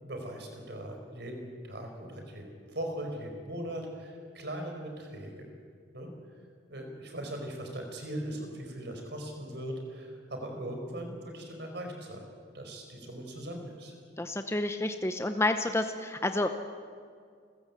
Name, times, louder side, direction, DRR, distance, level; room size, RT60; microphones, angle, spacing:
voice 1, 0.0-5.5 5.9-6.1 6.7-12.2 12.5-13.9, right 1 dB, 60° right, 3 dB, 4.9 m, -39 dB
voice 2, 14.2-16.5, left 2 dB, 15° left, 7 dB, 0.8 m, -29 dB
28.0 x 15.0 x 8.3 m, 2.1 s
head